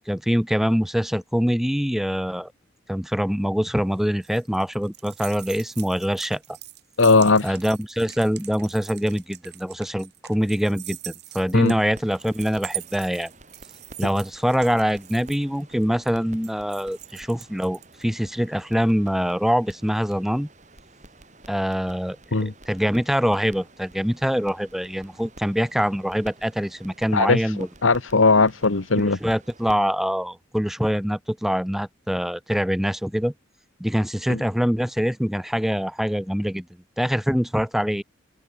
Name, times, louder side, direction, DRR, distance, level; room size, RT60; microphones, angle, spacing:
voice 1, 0.1-2.5 2.9-6.4 7.4-13.3 14.0-20.5 21.5-22.2 22.7-27.7 29.0-33.3 33.8-36.7 37.0-38.0, equal, ahead, 0.6 m, -24 dB
sound 1, 3.8-18.0, right 15 dB, 55° right, 7.1 m, -41 dB
voice 2, 7.0-7.6 11.5-11.7 22.3-22.5 27.1-27.5 27.8-29.2 34.3-34.4, left 3 dB, 85° left, 1.3 m, -18 dB
sound 2, 11.6-29.7, right 2 dB, 40° right, 7.6 m, -50 dB
head